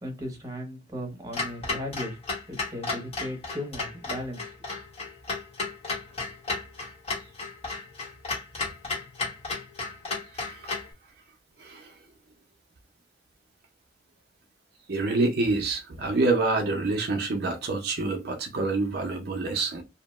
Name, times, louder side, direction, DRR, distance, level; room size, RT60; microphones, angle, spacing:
voice 1, 0.0-2.2 2.5-4.5, equal, 20° right, 0.8 m, -36 dB
Clock, 1.3-10.9, left 3 dB, 35° left, 0.9 m, -33 dB
voice 2, 10.3-10.7 11.6-11.9 14.9-19.8, right 3 dB, 60° right, 0.5 m, -27 dB
2.7 x 2.1 x 3.0 m
head